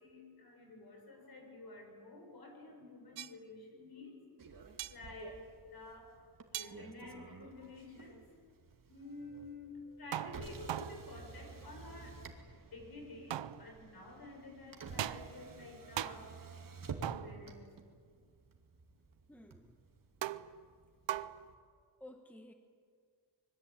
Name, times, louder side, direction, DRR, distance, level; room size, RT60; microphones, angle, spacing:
voice 1, 0.0-4.2 4.9-6.2 6.5-8.2 8.9-12.2 12.7-17.7, left 2 dB, 55° left, 3 dB, 6.9 m, -51 dB
sound 1, 3.2-3.3 4.8-5.0 6.5-6.7 10.1-11.3 13.3-13.9 15.0-15.6 16.0-16.4 17.0-17.7 20.2-20.7 21.1-21.5, right 12 dB, 80° right, 0.8 m, -40 dB
Motor vehicle (road), 4.4-21.5, right 4 dB, 50° right, 2.6 m, -52 dB
voice 2, 16.6-17.0 19.3-19.8 22.0-22.5, left 1 dB, 5° left, 5 dB, 1.3 m, -55 dB
25.0 x 22.0 x 8.9 m, 2.1 s
wide cardioid pair, 125°, 44 cm